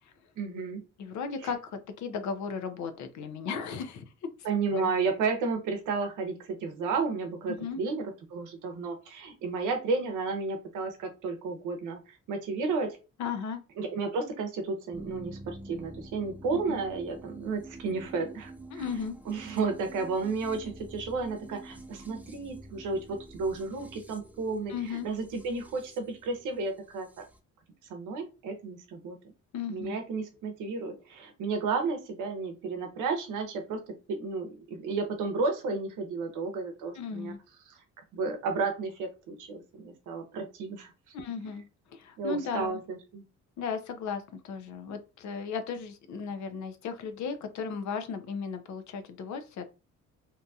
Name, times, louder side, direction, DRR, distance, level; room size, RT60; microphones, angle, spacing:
voice 1, 0.4-0.8 4.4-13.0 13.8-18.8 19.3-27.2 27.9-29.2 29.7-33.8 34.1-37.4 37.7-37.8 38.1-40.9 42.2-43.2, right 4 dB, 90° right, 5 dB, 0.7 m, -32 dB
voice 2, 1.0-4.1 4.7-4.9 7.5-7.8 13.2-13.6 16.5-16.8 18.7-19.2 24.7-25.1 29.5-30.0 36.9-37.4 41.1-41.7 41.9-42.8 43.6-49.6, left 5 dB, 70° left, 9 dB, 0.6 m, -35 dB
sound 1, 14.9-27.4, right 2 dB, 5° right, 0.3 m, -47 dB
2.8 x 2.6 x 2.3 m, 0.31 s
cardioid pair, 90°, 30 cm